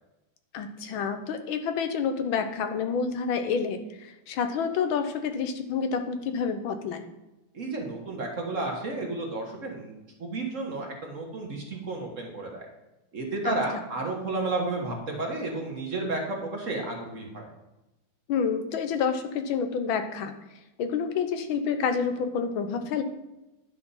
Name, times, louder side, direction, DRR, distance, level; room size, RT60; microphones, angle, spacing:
voice 1, 0.5-7.0 13.4-13.6 18.3-20.3 20.8-23.0, left 6 dB, 90° left, 8 dB, 1.6 m, -28 dB
voice 2, 7.5-9.9 10.2-12.7 13.1-17.5, right 2 dB, 45° right, 1 dB, 1.6 m, -32 dB
10.5 x 4.7 x 5.6 m, 0.98 s
omnidirectional pair, 2.1 m